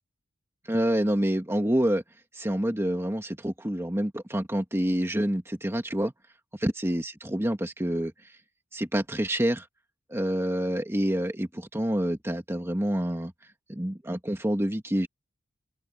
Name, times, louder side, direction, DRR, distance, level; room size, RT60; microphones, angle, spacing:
voice 1, 0.7-2.0 2.3-6.1 6.6-8.3 8.7-9.7 10.1-13.3 13.7-15.1, equal, 15° right, 2.0 m, -27 dB
open air
head